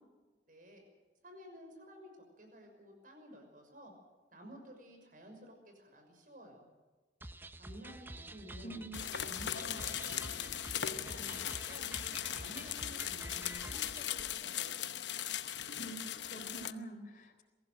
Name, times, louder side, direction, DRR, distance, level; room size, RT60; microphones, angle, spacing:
voice 1, 0.5-0.8 1.2-3.9 4.3-6.7 7.6-8.8 9.3-11.9 12.3-14.8, equal, 50° right, 4 dB, 6.1 m, -53 dB
sound 1, 7.2-14.0, right 1 dB, 10° right, 0.8 m, -49 dB
sound 2, 8.9-16.7, left 10 dB, 85° left, 0.9 m, -39 dB
voice 2, 16.2-17.4, right 1 dB, 45° left, 4 dB, 3.9 m, -46 dB
23.5 x 16.0 x 7.7 m, 1.3 s
head